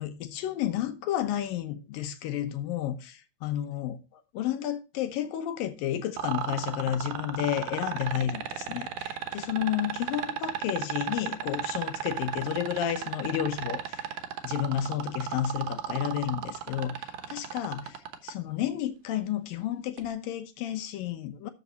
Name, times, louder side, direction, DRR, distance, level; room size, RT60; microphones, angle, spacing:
voice 1, 0.0-4.0 4.3-14.1 14.4-21.5, left 11 dB, 70° left, 2.5 m, -31 dB
sound 1, 6.2-18.3 20.0-20.1, right 11 dB, 65° right, 2.2 m, -33 dB
13.0 x 6.0 x 4.0 m
omnidirectional pair, 4.4 m